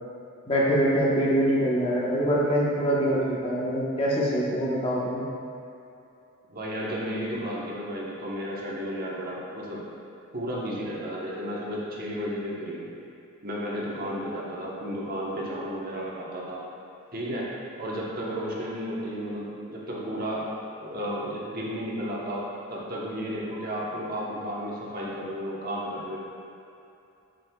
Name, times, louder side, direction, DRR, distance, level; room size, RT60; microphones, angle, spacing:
voice 1, 0.5-5.2, equal, 25° left, -6 dB, 1.2 m, -24 dB
voice 2, 6.5-9.8 10.3-12.9 13.4-16.6 17.1-17.5 17.8-20.5 20.8-26.2, equal, 45° right, -5 dB, 1.2 m, -33 dB
7.8 x 6.5 x 2.4 m, 2.7 s
head